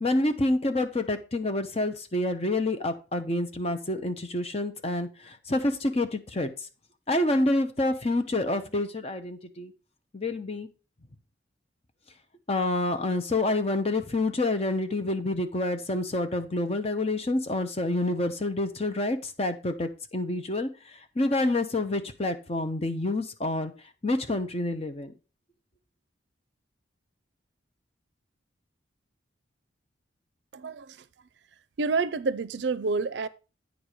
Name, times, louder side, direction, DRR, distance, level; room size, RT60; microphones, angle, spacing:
voice 1, 0.0-6.7 7.1-9.7 10.1-10.7 12.5-23.7 24.0-25.1, left 2 dB, 30° left, 0.9 m, -28 dB
voice 2, 30.5-31.0 31.8-33.3, right 4 dB, 65° right, 0.5 m, -28 dB
9.4 x 4.7 x 5.0 m
head